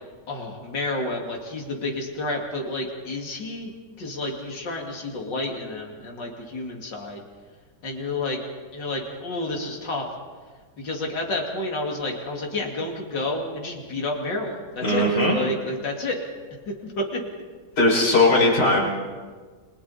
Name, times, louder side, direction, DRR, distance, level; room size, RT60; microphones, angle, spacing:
voice 1, 0.3-3.7 4.0-7.2 7.8-8.4 8.7-10.1 10.8-15.1 15.3-16.2 16.7-17.2, left 2 dB, 85° left, 0 dB, 3.1 m, -30 dB
voice 2, 14.8-15.3 17.8-18.8, left 2 dB, 70° left, -4 dB, 6.6 m, -18 dB
29.5 x 22.5 x 4.2 m, 1.5 s
omnidirectional pair, 1.9 m